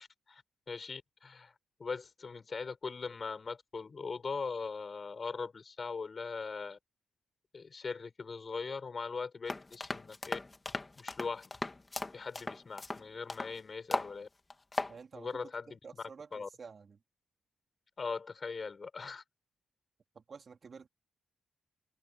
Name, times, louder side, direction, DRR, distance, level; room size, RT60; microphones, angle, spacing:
voice 1, 0.0-1.5 1.8-6.8 7.5-10.4 10.9-11.5 12.1-14.3 15.1-16.0 16.3-16.5 18.0-19.2, left 4 dB, 45° left, 6.7 m, -40 dB
sound 1, 9.5-13.6 13.9-14.1 14.5-15.0, left 2 dB, 30° left, 2.3 m, -37 dB
voice 2, 14.9-17.0 20.1-20.9, right 5 dB, 50° right, 3.6 m, -51 dB
open air
supercardioid pair, 50°, 0 cm